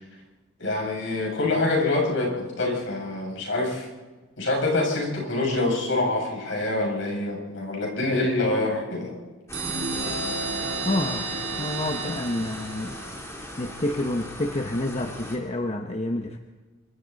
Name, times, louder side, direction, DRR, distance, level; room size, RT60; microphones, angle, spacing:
voice 1, 0.6-3.9 4.4-9.2, left 2 dB, 65° left, -1 dB, 7.0 m, -25 dB
sound 1, 9.5-15.4, equal, 15° left, 3.6 m, -38 dB
sound 2, 9.5-13.1, right 3 dB, 55° right, 5.4 m, -31 dB
voice 2, 10.8-13.0 13.6-16.4, left 1 dB, 35° left, 4 dB, 1.1 m, -29 dB
26.0 x 24.5 x 4.1 m, 1.3 s
head